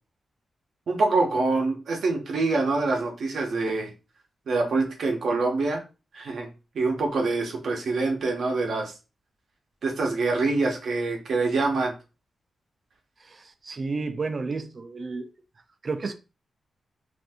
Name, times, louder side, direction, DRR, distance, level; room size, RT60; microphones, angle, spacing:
voice 1, 0.9-3.9 4.5-5.8 6.1-6.5 6.7-8.9 9.8-11.9, right 3 dB, 65° right, 0.7 m, -25 dB
voice 2, 13.2-15.3 15.8-16.1, right 4 dB, 35° right, 0.4 m, -31 dB
2.6 x 2.5 x 3.4 m
wide cardioid pair, 160°, 0 cm